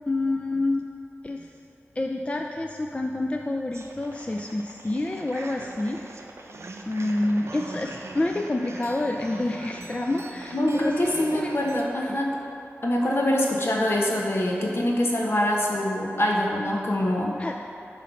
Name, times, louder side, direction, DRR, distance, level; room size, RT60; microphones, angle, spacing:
voice 1, 0.1-0.9 1.2-1.5 2.0-6.0 6.9-11.5 12.1-12.2 17.4-17.5, left 2 dB, 25° left, 2 dB, 0.4 m, -28 dB
sound 1, 3.7-11.8, right 2 dB, 65° right, 0.6 m, -42 dB
voice 2, 10.5-12.3 12.8-17.3, left 1 dB, 60° left, -2 dB, 1.1 m, -24 dB
9.1 x 3.2 x 5.7 m, 2.8 s
wide cardioid pair, 55°, 5 cm